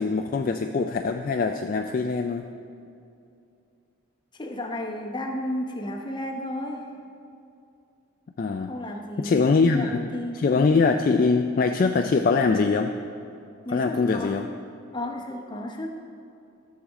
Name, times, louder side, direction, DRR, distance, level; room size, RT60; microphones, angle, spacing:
voice 1, 0.0-2.5 8.4-8.7 9.2-10.0 10.3-12.9 13.7-14.5, left 4 dB, 40° left, 5 dB, 0.3 m, -23 dB
voice 2, 4.3-6.9 8.7-10.4 13.6-14.4 14.9-15.9, left 1 dB, 20° left, 2 dB, 0.8 m, -33 dB
13.5 x 7.5 x 3.7 m, 2.5 s
head